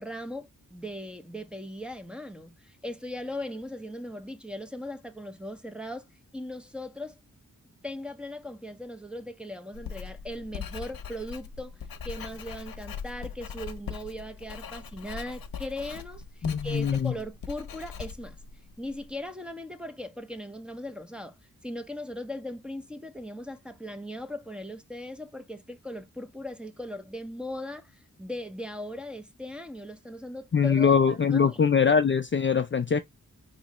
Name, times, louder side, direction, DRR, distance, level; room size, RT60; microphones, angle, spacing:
voice 1, 0.0-6.1 6.3-7.2 7.8-11.7 12.0-18.4 18.8-21.4 21.6-31.6, left 1 dB, 5° right, 0.7 m, -38 dB
Writing, 9.7-19.1, left 6 dB, 90° left, 0.7 m, -40 dB
voice 2, 16.4-17.1 30.5-33.0, left 6 dB, 35° left, 0.4 m, -22 dB
4.8 x 3.1 x 2.9 m
wide cardioid pair, 75°, 34 cm